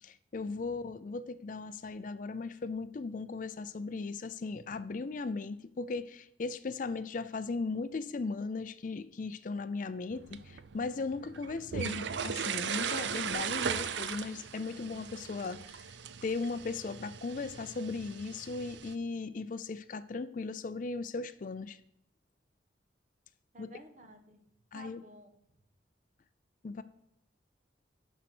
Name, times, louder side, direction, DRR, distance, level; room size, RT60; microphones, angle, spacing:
voice 1, 0.0-15.9 16.2-21.8 23.6-23.7 24.7-25.0 26.6-26.8, left 4 dB, 45° left, 14 dB, 0.4 m, -37 dB
sound 1, 10.1-19.0, right 7 dB, 70° right, 0.5 m, -38 dB
voice 2, 23.5-24.4 24.7-25.3, right 1 dB, 40° right, 7 dB, 1.1 m, -53 dB
11.0 x 4.5 x 6.0 m, 0.77 s
head